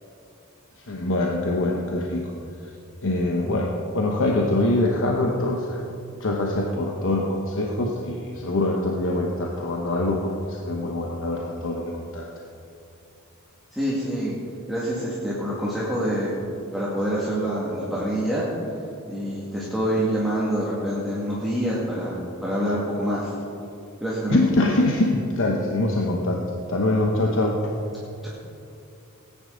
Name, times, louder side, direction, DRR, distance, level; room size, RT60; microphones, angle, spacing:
voice 1, 0.9-2.3 3.0-5.8 6.2-12.3 24.3-26.4 26.7-27.6, left 2 dB, 60° left, 0 dB, 1.0 m, -24 dB
voice 2, 13.7-14.4 14.7-16.4 16.7-18.5 19.1-23.3 24.0-24.4 28.2-28.3, equal, ahead, -9 dB, 2.0 m, -26 dB
19.0 x 10.0 x 3.9 m, 2.6 s
head